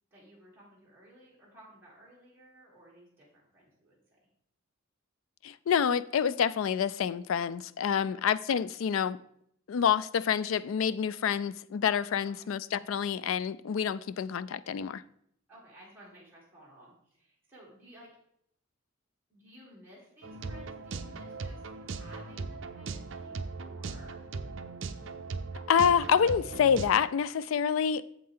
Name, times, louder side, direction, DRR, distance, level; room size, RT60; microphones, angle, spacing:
voice 1, 0.1-4.0 8.0-8.2 12.2-12.5 15.5-18.2 19.3-24.2, equal, 10° right, 2.6 m, -56 dB
voice 2, 5.4-9.2 9.7-15.0 25.7-28.2, left 7 dB, 75° left, 0.3 m, -27 dB
sound 1, 20.2-26.9, right 4 dB, 65° right, 0.5 m, -39 dB
7.7 x 7.5 x 3.7 m
head